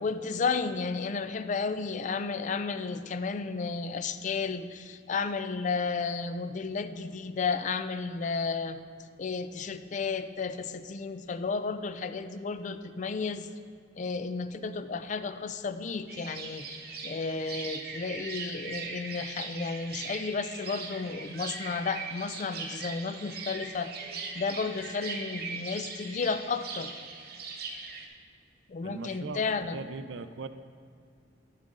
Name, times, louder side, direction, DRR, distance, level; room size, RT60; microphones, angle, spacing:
voice 1, 0.0-8.8 9.2-13.5 14.0-16.8 17.0-23.9 24.4-26.9 28.7-29.8, left 4 dB, 40° left, 11 dB, 0.4 m, -33 dB
sound 1, 16.1-28.1, right 4 dB, 55° right, 0.9 m, -40 dB
voice 2, 28.8-30.5, right 4 dB, 75° right, 12 dB, 0.4 m, -40 dB
9.0 x 7.5 x 3.7 m, 2.4 s
head